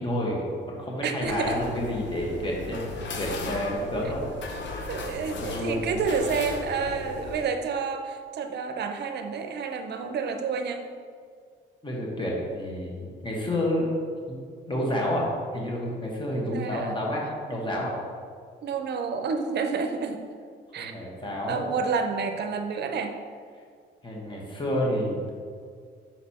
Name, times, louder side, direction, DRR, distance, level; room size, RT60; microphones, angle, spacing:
voice 1, 0.0-4.3 5.4-6.0 11.8-13.9 14.3-14.4 14.7-15.3 15.5-17.9 20.8-21.7 24.0-25.3, equal, 25° left, -3 dB, 1.6 m, -29 dB
voice 2, 1.0-1.6 4.9-10.9 16.5-17.0 18.6-20.2 20.7-21.0 21.5-23.1, right 5 dB, 60° right, 7 dB, 0.6 m, -29 dB
sound 1, 1.2-7.5, left 3 dB, 65° left, 0.8 m, -36 dB
5.9 x 4.2 x 4.2 m, 2.1 s
cardioid pair, 90°, 20 cm